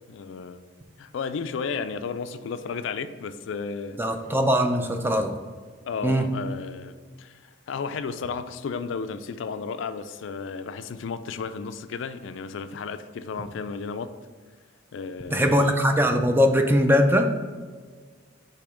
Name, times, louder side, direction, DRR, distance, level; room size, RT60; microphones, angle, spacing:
voice 1, 0.1-0.6 1.0-4.0 5.9-14.1 14.9-15.8, left 5 dB, 75° left, 11 dB, 0.3 m, -33 dB
voice 2, 4.0-5.3 6.0-6.2 15.3-17.3, equal, 10° right, 5 dB, 0.4 m, -21 dB
6.9 x 2.9 x 4.9 m, 1.6 s
head